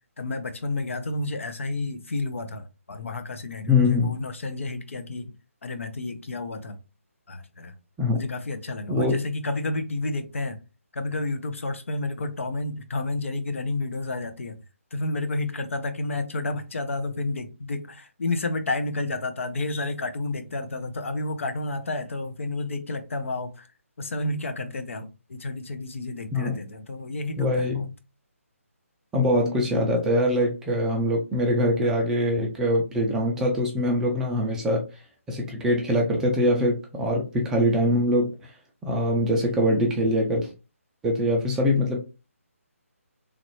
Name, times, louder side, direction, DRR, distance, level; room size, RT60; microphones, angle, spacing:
voice 1, 0.2-5.3 5.6-6.8 7.3-7.7 8.1-10.6 10.9-14.6 14.9-23.7 24.0-27.9, left 2 dB, 60° left, 0.6 m, -31 dB
voice 2, 3.7-4.1 8.0-8.2 8.9-9.2 26.3-26.5 27.4-27.9 29.1-34.8 35.3-38.5 38.8-40.5 41.0-42.0, left 1 dB, 5° right, 0.4 m, -23 dB
3.2 x 2.4 x 3.0 m
figure-of-eight pair, 150°, 8 cm